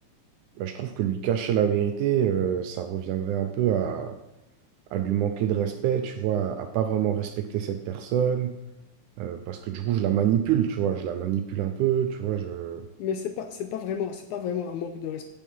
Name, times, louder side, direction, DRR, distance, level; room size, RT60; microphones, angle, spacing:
voice 1, 0.6-4.2 4.9-8.5 9.2-12.8, right 9 dB, 80° right, 7 dB, 1.9 m, -26 dB
voice 2, 13.0-15.3, left 8 dB, 75° left, 7 dB, 1.8 m, -31 dB
8.8 x 7.6 x 5.5 m, 0.93 s
omnidirectional pair, 3.9 m